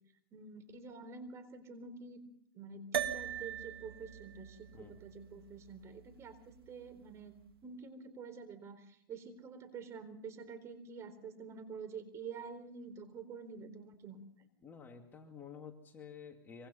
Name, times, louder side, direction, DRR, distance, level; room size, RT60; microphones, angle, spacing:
voice 1, 0.3-2.2 2.6-14.3, right 5 dB, 25° right, 9 dB, 4.1 m, -48 dB
sound 1, 2.9-7.5, right 9 dB, 80° right, 1.7 m, -42 dB
voice 2, 14.6-16.7, left 6 dB, 15° left, 3 dB, 2.4 m, -51 dB
25.5 x 25.5 x 5.7 m, 0.65 s
hypercardioid pair, 135°, 12 cm